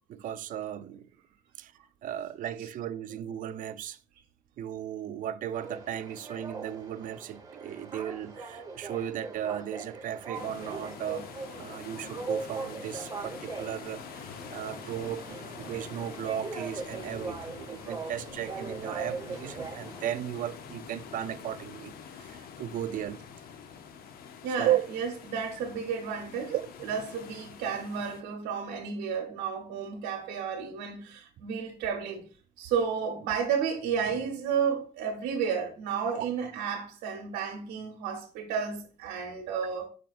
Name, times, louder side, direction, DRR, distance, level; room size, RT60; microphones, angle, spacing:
voice 1, 0.1-1.1 1.6-1.7 2.0-4.0 4.6-11.3 11.6-15.2 15.6-23.2 24.6-24.8 26.5-26.6 36.2-36.3, right 11 dB, 55° right, 0.4 m, -35 dB
sound 1, 5.5-20.0, right 4 dB, 20° right, 1.0 m, -40 dB
sound 2, 10.3-28.2, left 7 dB, 60° left, 0.6 m, -46 dB
voice 2, 24.4-32.2 32.6-39.9, right 6 dB, 90° right, 0.8 m, -32 dB
5.1 x 4.3 x 2.4 m
cardioid pair, 110°, 17 cm